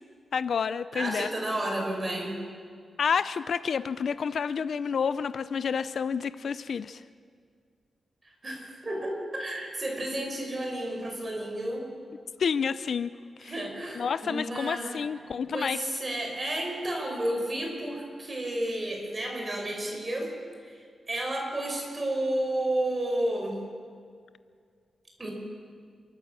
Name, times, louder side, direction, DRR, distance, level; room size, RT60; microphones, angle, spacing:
voice 1, 0.3-1.3 3.0-7.0 12.4-13.1 13.4-13.6 13.9-15.8, left 6 dB, 70° left, 15 dB, 0.5 m, -29 dB
voice 2, 0.9-2.4 8.4-11.9 13.4-15.0 15.5-20.3 20.6-20.8 21.1-23.6 25.2-25.3, right 1 dB, 30° right, 1 dB, 5.3 m, -31 dB
29.0 x 14.0 x 7.4 m, 2.1 s
wide cardioid pair, 110°, 0 cm